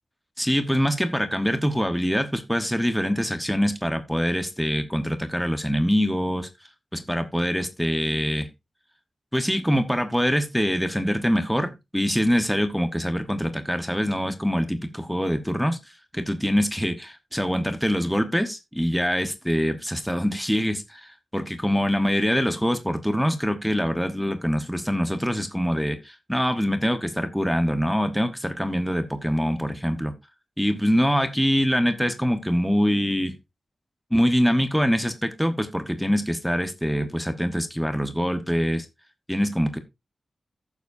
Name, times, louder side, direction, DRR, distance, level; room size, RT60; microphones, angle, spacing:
voice 1, 0.4-6.5 6.9-8.5 9.3-15.8 16.1-30.1 30.6-33.4 34.1-38.8 39.3-39.8, equal, ahead, 8 dB, 1.1 m, -24 dB
14.5 x 7.2 x 2.7 m, 0.23 s
wide cardioid pair, 120°, 0 cm